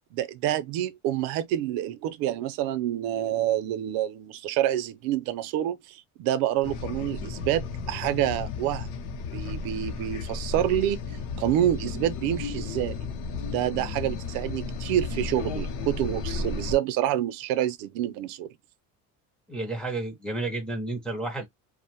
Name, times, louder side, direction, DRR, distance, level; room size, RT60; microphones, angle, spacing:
voice 1, 0.1-8.9 9.3-11.0 11.4-13.0 13.5-18.5, right 12 dB, 80° right, 0.5 m, -27 dB
sound 1, 6.6-16.7, left 4 dB, 65° left, 0.7 m, -34 dB
voice 2, 19.5-21.5, right 2 dB, ahead, 0.4 m, -31 dB
2.5 x 2.1 x 2.8 m
cardioid pair, 165°, 35 cm